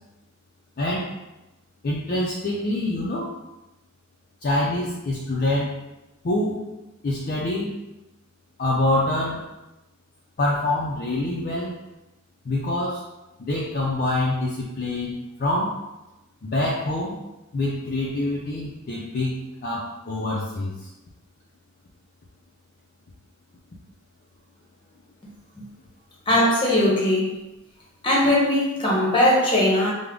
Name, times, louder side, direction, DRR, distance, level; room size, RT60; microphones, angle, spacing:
voice 1, 0.8-1.1 1.8-3.4 4.4-5.8 6.2-6.6 7.0-7.7 8.6-9.5 10.4-11.7 12.4-13.0 13.4-15.8 16.4-17.2 17.5-19.3 19.6-20.7, left 1 dB, 40° left, -5 dB, 0.4 m, -25 dB
voice 2, 26.3-27.4 28.0-29.9, left 1 dB, 25° left, -4 dB, 0.8 m, -20 dB
3.4 x 2.1 x 3.7 m, 0.97 s
head